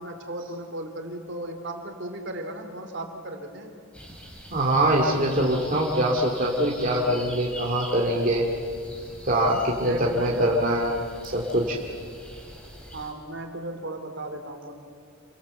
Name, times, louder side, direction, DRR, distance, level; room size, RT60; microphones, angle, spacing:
voice 1, 0.0-3.7 9.7-10.4 12.9-14.7, right 1 dB, 55° right, 5 dB, 3.0 m, -36 dB
sound 1, 3.9-13.1, right 1 dB, 5° left, 4.3 m, -43 dB
voice 2, 4.5-8.5 9.3-11.0 11.2-11.8, right 1 dB, 40° right, -1 dB, 2.3 m, -23 dB
28.5 x 22.5 x 7.9 m, 2.1 s
head